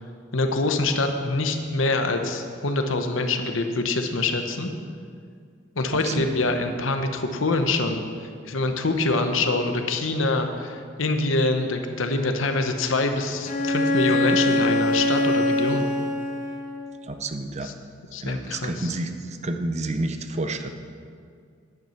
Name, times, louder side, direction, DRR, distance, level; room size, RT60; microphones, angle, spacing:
voice 1, 0.3-4.7 5.8-8.0 8.4-15.9 17.6-17.7 18.1-18.9, left 2 dB, 90° left, 6 dB, 1.0 m, -25 dB
voice 2, 5.9-6.2 17.1-17.7 18.2-19.1 19.4-20.7, right 2 dB, 35° right, 7 dB, 0.7 m, -29 dB
Bowed string instrument, 13.5-17.0, left 1 dB, 40° left, 0.8 m, -23 dB
9.6 x 9.4 x 5.8 m, 2.2 s
head